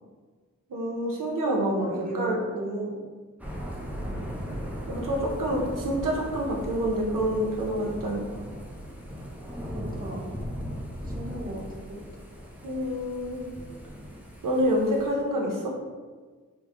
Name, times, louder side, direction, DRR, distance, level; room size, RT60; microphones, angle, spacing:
voice 1, 0.7-1.9 2.1-2.4 4.9-8.3 12.6-13.5 14.4-15.7, equal, 80° right, -1 dB, 0.7 m, -27 dB
voice 2, 1.7-3.0 4.0-4.3 9.6-10.2 11.0-11.6 11.9-12.2, right 1 dB, 25° right, -4 dB, 0.9 m, -35 dB
Thunder / Rain, 3.4-15.1, equal, 5° right, 0.6 m, -38 dB
3.4 x 2.2 x 3.6 m, 1.4 s
wide cardioid pair, 55°, 32 cm